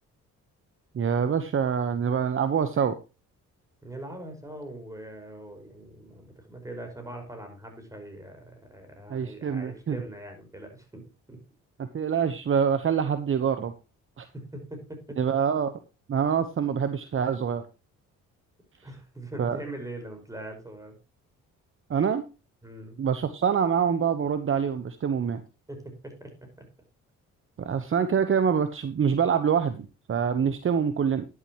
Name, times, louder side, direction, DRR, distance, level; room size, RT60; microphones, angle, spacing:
voice 1, 0.9-2.9 9.1-10.0 11.8-13.7 14.2-14.3 15.2-15.7 16.1-17.7 19.4-19.6 21.9-22.2 23.0-25.4 27.6-31.3, right 7 dB, 45° right, 10 dB, 1.1 m, -25 dB
voice 2, 3.8-11.4 14.2-15.4 18.8-21.0 22.6-23.0 25.7-26.3, right 1 dB, 10° right, 5 dB, 5.2 m, -42 dB
11.5 x 11.0 x 3.0 m, 0.30 s
cardioid pair, 90°, 30 cm